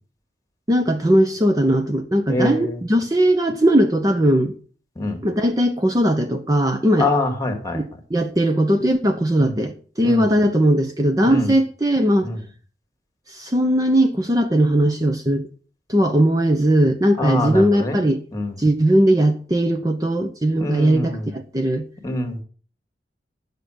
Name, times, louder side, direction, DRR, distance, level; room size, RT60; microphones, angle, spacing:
voice 1, 0.7-4.5 5.2-7.1 7.7-12.3 13.3-15.5 15.9-18.2 18.6-21.9, right 1 dB, 20° right, 0.8 m, -19 dB
voice 2, 2.3-2.8 5.0-5.2 7.0-7.8 9.4-9.6 10.0-10.3 11.2-11.5 12.2-12.4 17.2-18.0 18.3-18.6 20.6-21.3 22.0-22.4, left 2 dB, 20° left, 2.0 m, -24 dB
11.0 x 6.7 x 6.3 m
head